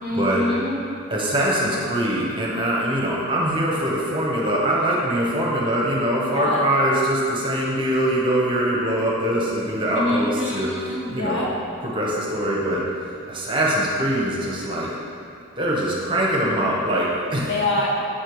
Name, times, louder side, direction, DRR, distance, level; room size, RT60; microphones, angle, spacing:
voice 1, 0.0-0.8 6.3-6.6 9.9-11.5 17.5-17.9, left 2 dB, 55° left, -4 dB, 1.0 m, -25 dB
voice 2, 1.1-10.7 11.1-11.4 11.8-12.8 13.3-14.9 15.6-17.5, right 1 dB, 25° right, -4 dB, 0.8 m, -23 dB
7.3 x 3.3 x 4.6 m, 2.6 s
head